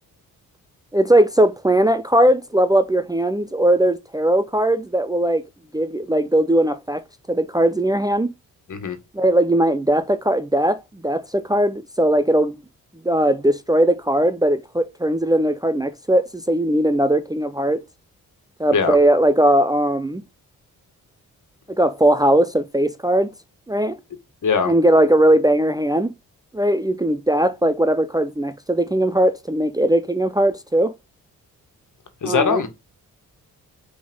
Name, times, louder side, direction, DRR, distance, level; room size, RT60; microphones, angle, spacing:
voice 1, 0.9-5.4 5.7-8.3 9.1-12.6 13.0-17.8 18.6-20.2 21.7-23.3 23.7-24.0 24.7-26.1 26.5-30.9 32.2-32.6, right 1 dB, 10° right, 0.7 m, -19 dB
voice 2, 24.4-24.7 32.2-32.7, left 5 dB, 55° left, 1.8 m, -20 dB
5.9 x 4.0 x 5.4 m
supercardioid pair, 50°, 36 cm